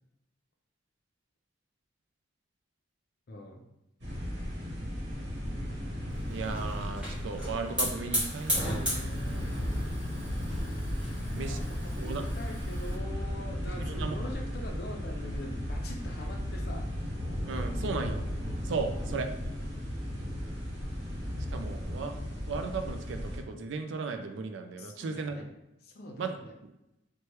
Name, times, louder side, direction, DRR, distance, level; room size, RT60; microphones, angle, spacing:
voice 1, 3.3-3.6 11.1-16.9 24.8-25.5 25.8-26.5, left 1 dB, 50° left, 2 dB, 0.4 m, -44 dB
sound 1, 4.0-23.4, equal, 55° right, 1.0 m, -35 dB
Hiss / Fire, 6.1-12.9, equal, 5° right, 0.8 m, -36 dB
voice 2, 6.3-9.5 11.3-11.6 12.0-12.3 13.8-14.2 17.5-18.2 18.6-19.3 21.5-22.1 22.5-25.5 26.2-26.4, right 4 dB, 70° right, 7 dB, 0.3 m, -36 dB
3.1 x 2.2 x 2.9 m, 0.90 s
head